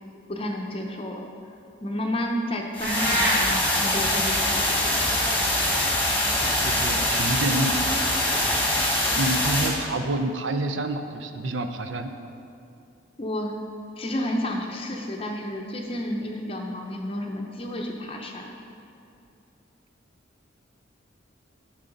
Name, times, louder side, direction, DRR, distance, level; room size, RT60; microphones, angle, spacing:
voice 1, 0.3-1.5 1.8-4.9 13.2-13.5 14.0-18.5, left 1 dB, 30° left, 1 dB, 0.6 m, -31 dB
sound 1, 2.7-9.7, left 1 dB, 10° left, 1.4 m, -24 dB
sound 2, 2.8-3.4, right 1 dB, 50° right, 1.5 m, -25 dB
voice 2, 6.4-7.7 9.2-12.1, right 2 dB, 75° right, 7 dB, 0.6 m, -28 dB
11.0 x 6.3 x 3.9 m, 2.6 s
head